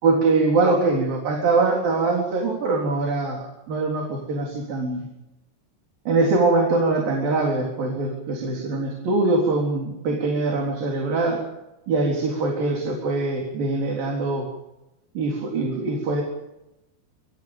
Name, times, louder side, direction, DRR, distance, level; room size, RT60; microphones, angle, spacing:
voice 1, 0.0-5.1 6.1-11.4 11.9-14.5 15.2-16.2, right 3 dB, 55° right, 0 dB, 5.5 m, -23 dB
27.0 x 24.0 x 5.2 m, 0.92 s
omnidirectional pair, 5.0 m